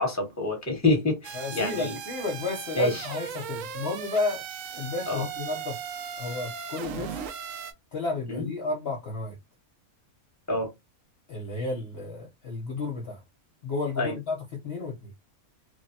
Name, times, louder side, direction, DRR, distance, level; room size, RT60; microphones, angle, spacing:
voice 1, 0.0-1.9 2.8-3.1 5.1-5.3 8.3-8.5 10.5-10.7 14.0-14.1, left 2 dB, 15° left, 1.0 m, -27 dB
sound 1, 1.2-7.7, right 7 dB, 70° right, 0.9 m, -37 dB
voice 2, 1.3-4.4 4.7-5.8 6.2-7.2 7.9-9.4 11.3-13.2 13.6-15.1, left 3 dB, 55° left, 0.8 m, -32 dB
3.2 x 2.1 x 2.7 m
omnidirectional pair, 1.5 m